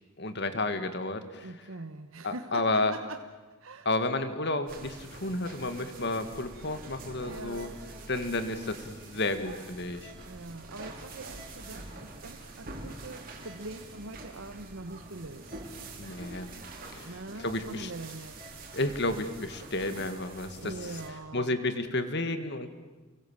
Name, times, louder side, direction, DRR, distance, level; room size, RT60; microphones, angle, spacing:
voice 1, 0.2-1.7 2.2-2.9 3.9-7.7 8.1-10.1 16.0-16.5 16.9-17.9 18.7-21.0 21.3-22.8, left 2 dB, 55° left, 9 dB, 2.1 m, -32 dB
voice 2, 1.4-3.2 3.6-3.9 7.2-7.8 10.3-15.6 17.0-18.4 20.6-21.6, right 2 dB, 75° right, 7 dB, 1.1 m, -43 dB
sound 1, 4.7-21.1, right 2 dB, 40° right, 4.4 m, -45 dB
29.5 x 23.5 x 7.5 m, 1.2 s
head